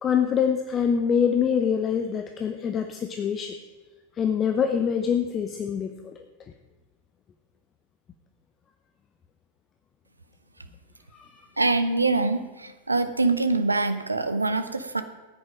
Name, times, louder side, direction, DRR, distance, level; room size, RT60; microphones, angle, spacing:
voice 1, 0.0-3.6 4.2-6.1 11.1-11.3, left 7 dB, 25° left, 6 dB, 0.8 m, -25 dB
voice 2, 11.6-15.0, right 3 dB, 80° right, 10 dB, 0.9 m, -24 dB
14.5 x 9.7 x 5.2 m, 1.3 s
figure-of-eight pair, 90°, 0 cm